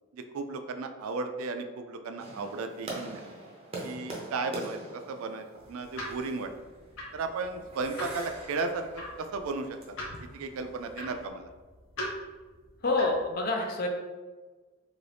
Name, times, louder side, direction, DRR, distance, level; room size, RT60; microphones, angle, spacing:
voice 1, 0.1-3.2 3.8-6.5 7.1-10.0 10.3-11.5, right 3 dB, 85° right, 7 dB, 0.3 m, -35 dB
sound 1, 2.2-11.3, right 2 dB, 30° right, 0.6 m, -44 dB
sound 2, 5.6-13.3, equal, 70° left, 0.9 m, -42 dB
voice 2, 12.8-13.9, left 2 dB, 45° left, 2 dB, 0.4 m, -27 dB
2.7 x 2.6 x 3.3 m, 1.3 s
head